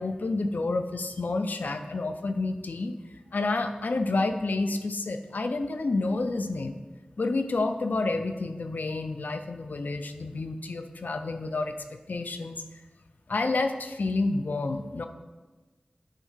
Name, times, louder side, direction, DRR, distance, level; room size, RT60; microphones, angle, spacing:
voice 1, 0.0-2.9 3.3-6.8 7.2-12.6 13.3-15.1, left 3 dB, 85° left, 8 dB, 0.5 m, -29 dB
9.0 x 3.6 x 5.6 m, 1.3 s
wide cardioid pair, 75°, 3 cm